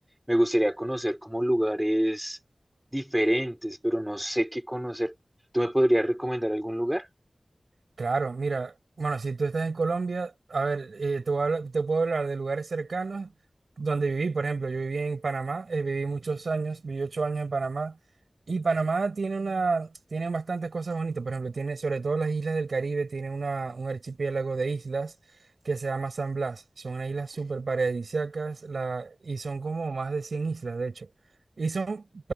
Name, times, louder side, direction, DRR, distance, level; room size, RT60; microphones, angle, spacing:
voice 1, 0.3-2.4 2.9-5.1 5.5-7.1, equal, 5° right, 5.8 m, -26 dB
voice 2, 8.0-13.3 13.8-18.0 18.5-25.1 25.6-31.1 31.6-32.0, right 4 dB, 90° right, 5.9 m, -29 dB
wide cardioid pair, 80°, 0 cm